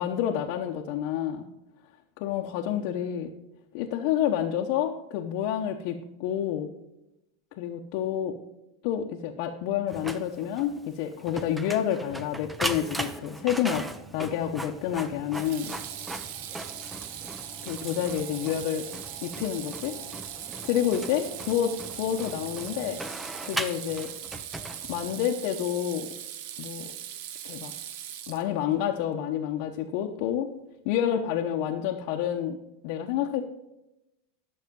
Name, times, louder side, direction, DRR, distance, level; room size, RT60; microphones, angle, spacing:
voice 1, 0.0-1.5 2.2-3.3 3.7-6.7 7.6-8.3 8.8-13.9 14.1-15.7 17.6-18.8 19.2-20.0 20.6-23.0 23.4-24.1 24.9-26.1 26.6-26.9 27.4-27.7 28.3-30.5 30.8-32.6 32.8-33.4, left 10 dB, 55° left, 0 dB, 0.9 m, -29 dB
Printer, 9.9-25.3, right 1 dB, 5° right, 0.7 m, -39 dB
Water tap faucet / Sink (filling or washing), 13.7-14.0 15.3-28.8, right 10 dB, 60° right, 0.9 m, -40 dB
12.0 x 6.5 x 5.3 m, 0.92 s
supercardioid pair, 145°, 0 cm